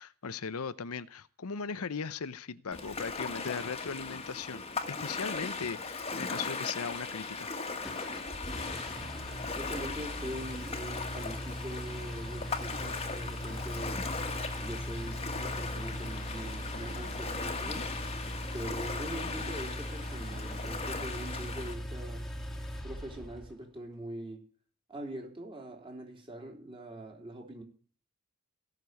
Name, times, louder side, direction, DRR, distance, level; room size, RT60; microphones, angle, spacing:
voice 1, 0.0-7.5, left 5 dB, 80° left, 0.7 m, -38 dB
Ocean, 2.7-21.7, left 4 dB, 25° left, 1.6 m, -38 dB
Engine, 7.8-23.5, equal, ahead, 2.0 m, -40 dB
voice 2, 9.6-14.0 14.6-17.9 18.5-22.3 22.8-24.4 24.9-27.6, right 1 dB, 25° right, 3.3 m, -43 dB
17.0 x 6.8 x 9.3 m
head